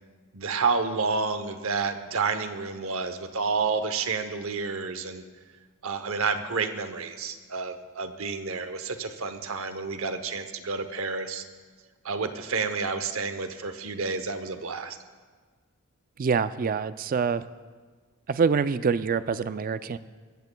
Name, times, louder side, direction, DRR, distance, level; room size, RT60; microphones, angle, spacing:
voice 1, 0.3-5.2 5.8-11.4 12.0-15.0, right 4 dB, 65° right, 9 dB, 0.8 m, -30 dB
voice 2, 16.2-17.4 18.3-20.0, right 5 dB, 40° right, 14 dB, 0.3 m, -25 dB
22.0 x 14.0 x 2.3 m, 1.5 s
head